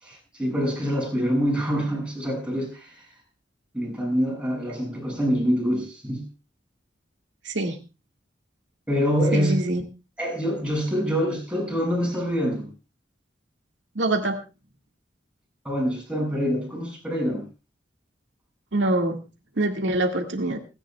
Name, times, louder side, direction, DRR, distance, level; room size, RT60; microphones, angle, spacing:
voice 1, 0.0-3.1 3.7-6.2 8.9-9.6 10.2-12.7 15.6-17.5, equal, 5° right, -1 dB, 6.9 m, -25 dB
voice 2, 7.5-7.8 9.3-9.8 14.0-14.4 18.7-19.2 19.6-20.6, right 2 dB, 85° right, 2 dB, 2.0 m, -24 dB
29.0 x 10.5 x 2.3 m, 0.30 s
head